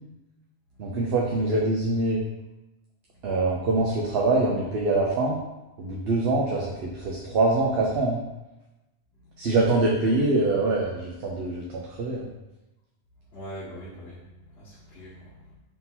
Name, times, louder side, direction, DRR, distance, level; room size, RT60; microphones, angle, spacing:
voice 1, 0.8-2.2 3.2-5.4 5.8-8.2 9.4-12.3, right 2 dB, 70° right, -3 dB, 0.8 m, -24 dB
voice 2, 13.3-15.6, equal, 70° left, -9 dB, 1.2 m, -42 dB
3.8 x 2.8 x 4.1 m, 0.98 s
omnidirectional pair, 1.1 m